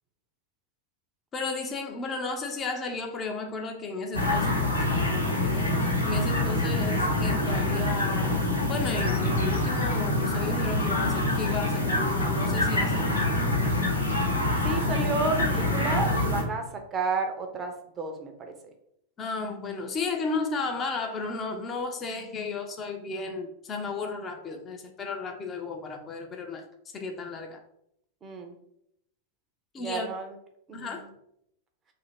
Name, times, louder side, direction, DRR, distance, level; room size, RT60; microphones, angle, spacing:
voice 1, 1.3-13.2 19.2-26.6 26.9-27.6 29.7-30.1 30.7-31.1, left 3 dB, 25° left, 3 dB, 0.5 m, -34 dB
sound 1, 4.1-16.4, left 2 dB, 85° left, 0.9 m, -26 dB
voice 2, 14.6-18.5 28.2-28.6 29.8-30.3 30.7-31.0, right 3 dB, 25° right, 4 dB, 0.6 m, -31 dB
2.7 x 2.5 x 4.2 m, 0.76 s
figure-of-eight pair, 90°, 0 cm